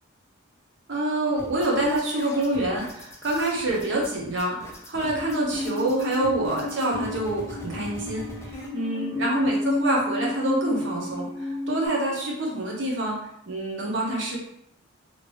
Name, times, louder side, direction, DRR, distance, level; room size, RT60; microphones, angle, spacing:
voice 1, 0.9-13.2 13.5-14.4, right 1 dB, 60° right, -2 dB, 0.8 m, -27 dB
sound 1, 1.4-8.7, left 1 dB, 15° left, 0.4 m, -42 dB
Musical instrument, 5.0-11.9, left 2 dB, 75° left, 0.6 m, -31 dB
2.9 x 2.5 x 3.0 m, 0.75 s
head